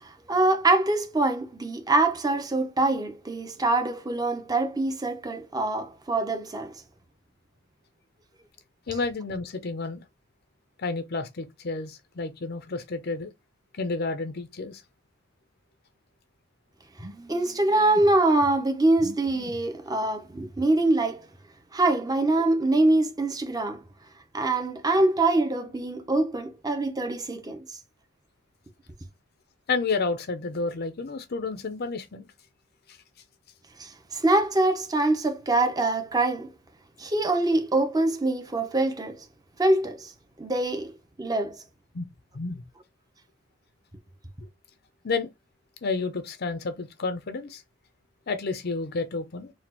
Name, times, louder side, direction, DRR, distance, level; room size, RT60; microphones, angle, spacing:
voice 1, 0.0-6.7 17.0-21.2 21.7-23.8 24.3-27.7 33.8-36.5 37.0-39.2 39.6-40.1 40.4-41.6, right 2 dB, 20° right, 0.8 m, -24 dB
voice 2, 8.9-10.0 10.8-13.3 13.7-14.8 29.7-32.3 32.9-33.0 41.9-42.0 42.3-42.6 45.0-45.3 45.8-47.6 48.3-49.5, left 4 dB, 50° left, 0.6 m, -30 dB
4.2 x 2.4 x 4.3 m
head